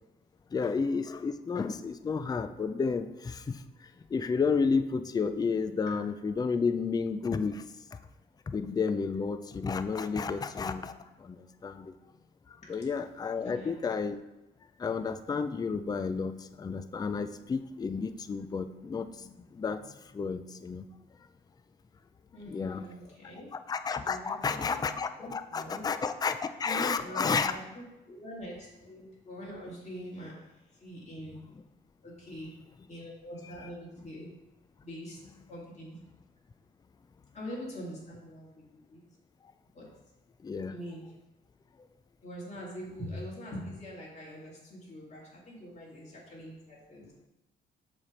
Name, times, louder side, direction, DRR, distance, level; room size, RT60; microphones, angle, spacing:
voice 1, 0.5-3.6 4.1-7.6 8.5-11.9 12.7-14.2 14.8-19.8 20.1-20.8 22.5-22.9 23.7-27.5 40.4-40.7, left 5 dB, 20° left, 10 dB, 0.4 m, -31 dB
voice 2, 13.4-13.7 22.3-23.5 24.0-24.8 25.2-25.8 26.6-31.4 32.0-32.5 32.9-34.3 34.8-35.2 35.5-36.0 37.3-39.0 39.7-39.9 40.7-41.0 42.2-47.3, equal, 35° left, -5 dB, 2.1 m, -43 dB
7.0 x 3.3 x 5.1 m, 0.97 s
cardioid pair, 90°, 20 cm